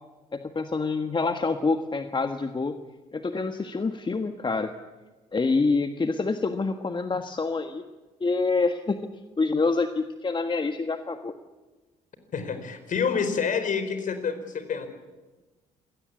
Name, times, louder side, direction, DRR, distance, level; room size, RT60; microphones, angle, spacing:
voice 1, 0.3-2.8 3.1-4.7 5.3-7.8 8.2-9.0 9.4-11.3, left 3 dB, 30° left, 8 dB, 1.6 m, -26 dB
voice 2, 12.3-14.9, left 6 dB, 50° left, 9 dB, 4.5 m, -28 dB
26.0 x 18.0 x 8.4 m, 1.2 s
hypercardioid pair, 50°, 17 cm